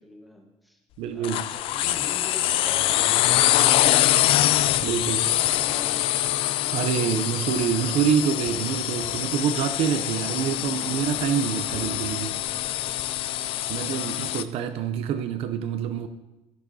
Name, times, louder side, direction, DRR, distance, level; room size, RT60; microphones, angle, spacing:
voice 1, 0.0-0.8 1.1-4.3 4.9-6.2, left 1 dB, ahead, 1.2 m, -45 dB
voice 2, 1.0-1.5 4.8-5.3 6.7-12.4 13.7-16.1, right 8 dB, 60° right, 0.5 m, -26 dB
sound 1, 1.2-14.4, left 13 dB, 50° left, 0.4 m, -24 dB
12.5 x 10.5 x 2.7 m
cardioid pair, 170°, 12 cm